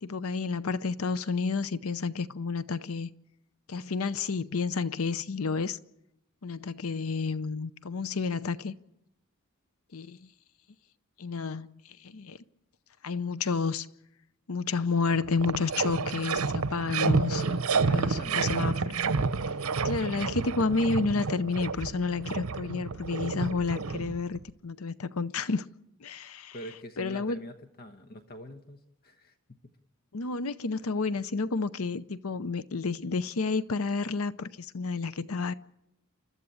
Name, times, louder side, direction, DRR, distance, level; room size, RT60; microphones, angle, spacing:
voice 1, 0.0-3.1 3.7-5.8 6.4-8.7 9.9-10.2 11.2-11.7 12.0-12.4 13.0-13.9 14.5-17.4 17.9-19.0 19.8-25.6 26.0-26.5 27.0-27.4 30.1-34.5 34.7-35.5, left 4 dB, 75° left, 0.7 m, -30 dB
sound 1, 14.7-14.8 15.1-24.5, right 4 dB, 80° right, 0.9 m, -30 dB
voice 2, 17.2-18.5 19.1-19.4 26.5-29.7, equal, 45° left, 1.2 m, -44 dB
29.0 x 13.0 x 8.5 m
head